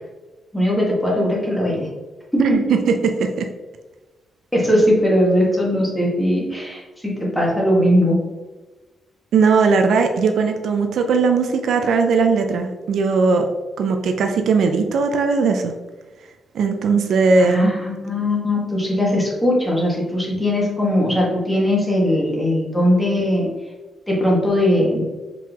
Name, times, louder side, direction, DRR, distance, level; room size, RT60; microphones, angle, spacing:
voice 1, 0.5-1.9 2.3-2.6 4.5-8.2 17.4-23.5 24.1-25.0, left 1 dB, 5° left, -4 dB, 1.5 m, -19 dB
voice 2, 2.4-3.5 9.3-13.5 13.8-15.7 16.5-17.7, right 4 dB, 75° right, 5 dB, 0.4 m, -18 dB
4.7 x 3.7 x 2.9 m, 1.2 s
cardioid pair, 120°, 0 cm